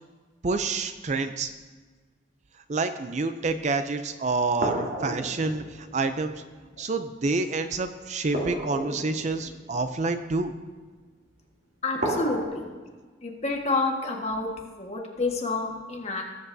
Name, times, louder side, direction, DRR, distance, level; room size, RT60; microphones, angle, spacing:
voice 1, 0.4-1.5 2.7-6.3 6.8-10.5, right 3 dB, 40° right, 9 dB, 0.4 m, -28 dB
sound 1, 4.6-6.7 8.3-10.6 12.0-12.5, right 1 dB, 55° right, 2.7 m, -33 dB
voice 2, 11.8-12.7 13.2-14.5 14.8-16.2, left 3 dB, 35° left, 0 dB, 1.5 m, -28 dB
19.0 x 7.9 x 2.7 m, 1.4 s
head